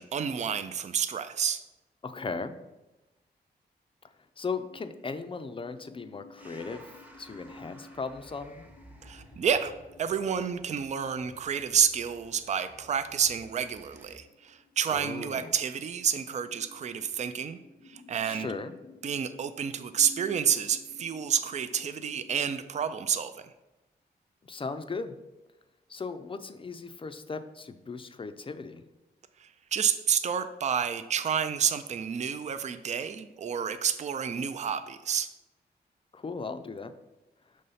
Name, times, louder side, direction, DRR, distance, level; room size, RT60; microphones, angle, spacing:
voice 1, 0.0-1.6 9.0-9.7 10.0-17.6 17.9-18.5 19.0-23.5 29.4-35.3, right 8 dB, 40° right, 10 dB, 0.4 m, -29 dB
voice 2, 2.0-2.5 4.4-6.8 7.2-8.7 14.9-15.5 18.3-18.7 24.4-25.1 25.9-28.8 36.1-36.9, left 4 dB, 30° left, 9 dB, 0.4 m, -37 dB
sound 1, 4.6-22.7, left 2 dB, 85° left, 0.6 m, -55 dB
sound 2, 6.4-14.2, equal, 10° right, 0.8 m, -55 dB
5.4 x 3.1 x 5.5 m, 1.0 s
cardioid pair, 85°, 17 cm